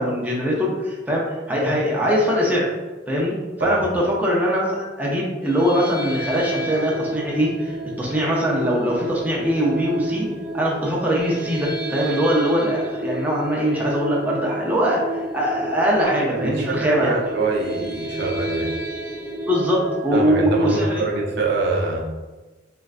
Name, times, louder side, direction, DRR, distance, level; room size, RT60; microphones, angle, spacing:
voice 1, 0.0-2.7 3.1-10.3 10.5-17.2 19.5-21.0, equal, 10° right, -4 dB, 0.4 m, -22 dB
sound 1, 5.4-21.6, right 1 dB, 50° left, 0.8 m, -31 dB
voice 2, 16.4-18.7 20.1-22.1, right 3 dB, 65° right, -1 dB, 0.5 m, -25 dB
3.1 x 2.4 x 2.4 m, 1.2 s
head